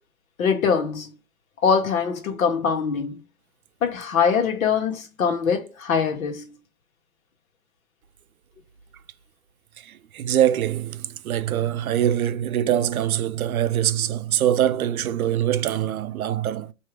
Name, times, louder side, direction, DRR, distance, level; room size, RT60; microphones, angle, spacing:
voice 1, 0.4-1.1 1.6-3.2 3.8-6.6, left 6 dB, 75° left, 1.3 m, -23 dB
voice 2, 9.8-16.7, right 11 dB, 85° right, 0.6 m, -23 dB
4.7 x 2.7 x 3.2 m
hypercardioid pair, 145°, 41 cm